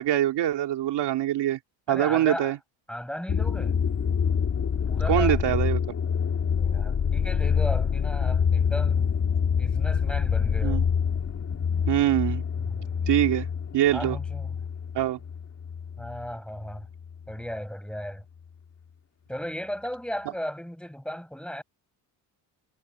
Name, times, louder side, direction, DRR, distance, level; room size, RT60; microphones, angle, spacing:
voice 1, 0.0-1.6 1.9-2.6 5.1-5.8 10.6-10.8 11.9-12.4 13.1-13.5 13.7-14.2 14.9-15.2, right 13 dB, 70° right, 2.8 m, -24 dB
voice 2, 1.9-2.5 2.9-3.8 4.9-5.4 6.6-9.1 9.5-10.8 12.6-13.1 13.9-14.6 16.0-16.9 17.3-18.2 19.3-21.6, equal, ahead, 8.0 m, -36 dB
sound 1, 3.3-16.3 16.6-17.2, left 6 dB, 40° left, 2.1 m, -26 dB
cardioid pair, 95°, 43 cm